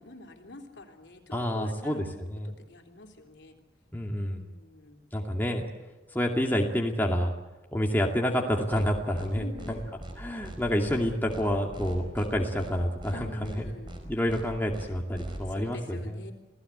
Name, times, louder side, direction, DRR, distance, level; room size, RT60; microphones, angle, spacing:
voice 1, 0.0-2.0 2.4-3.6 4.3-5.0 9.4-10.0 13.1-13.9 15.5-16.3, left 1 dB, 60° left, 4 dB, 3.5 m, -46 dB
voice 2, 1.3-2.5 3.9-4.5 5.1-5.7 6.1-7.3 7.7-9.8 10.2-13.7 14.0-16.2, equal, 10° left, 0 dB, 2.4 m, -28 dB
sound 1, 8.7-8.9 9.1-9.3 9.6-9.7 10.0-10.1 10.4-10.6 10.9-11.0 11.3-11.4 11.7-12.3 12.6-12.7 13.0-13.1 13.4-13.6 13.9-14.0 14.3-14.4 14.7-14.9 15.1-15.4, right 1 dB, 25° right, 4.7 m, -40 dB
28.0 x 17.5 x 8.1 m, 1.1 s
head